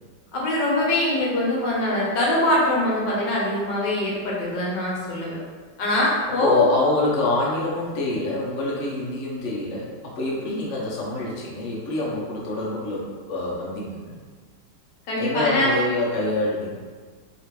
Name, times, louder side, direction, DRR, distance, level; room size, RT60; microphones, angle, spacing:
voice 1, 0.3-5.4 5.8-6.5 15.1-15.8, left 1 dB, 80° left, -4 dB, 1.4 m, -23 dB
voice 2, 6.3-14.2 15.2-16.8, left 2 dB, 60° left, -5 dB, 0.9 m, -25 dB
3.0 x 2.9 x 2.9 m, 1.5 s
omnidirectional pair, 1.9 m